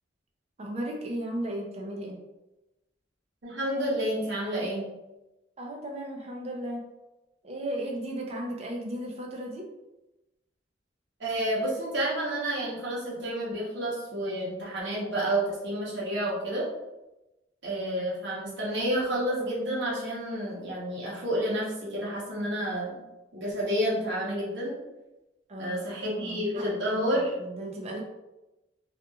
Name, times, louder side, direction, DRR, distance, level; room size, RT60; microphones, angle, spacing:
voice 1, 0.6-2.2 5.6-6.8 7.4-9.7 25.5-26.7 27.0-28.0, right 1 dB, 35° right, 1 dB, 0.5 m, -35 dB
voice 2, 3.4-4.9 11.2-16.7 17.6-22.9 23.3-24.8 25.6-27.3, right 1 dB, 75° right, -6 dB, 0.9 m, -30 dB
2.8 x 2.4 x 2.3 m, 1.0 s
head